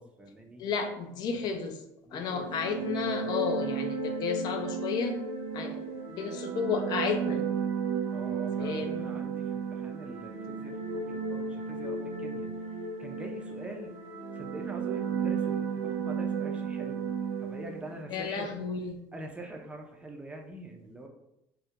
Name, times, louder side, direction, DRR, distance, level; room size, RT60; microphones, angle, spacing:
voice 1, 0.0-0.7 2.0-3.2 8.1-12.5 13.0-13.9 14.3-17.0 17.4-18.6 19.1-21.1, right 1 dB, 15° right, 2 dB, 0.4 m, -44 dB
voice 2, 0.6-1.8 2.1-5.2 5.5-7.4 8.6-9.1 18.1-18.9, left 5 dB, 55° left, 5 dB, 0.4 m, -32 dB
sound 1, 2.3-18.0, right 6 dB, 85° right, 0.4 m, -34 dB
2.2 x 2.0 x 2.8 m, 0.83 s
supercardioid pair, 95°, 8 cm